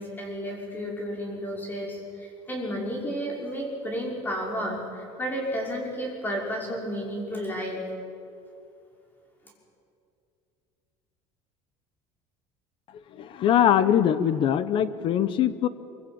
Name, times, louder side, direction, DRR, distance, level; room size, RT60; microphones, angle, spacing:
voice 1, 0.0-7.9, equal, 15° left, 0 dB, 5.7 m, -32 dB
voice 2, 13.2-15.7, left 9 dB, 40° left, 14 dB, 1.1 m, -22 dB
23.5 x 23.5 x 9.0 m, 2.6 s
cardioid pair, 165°, 13 cm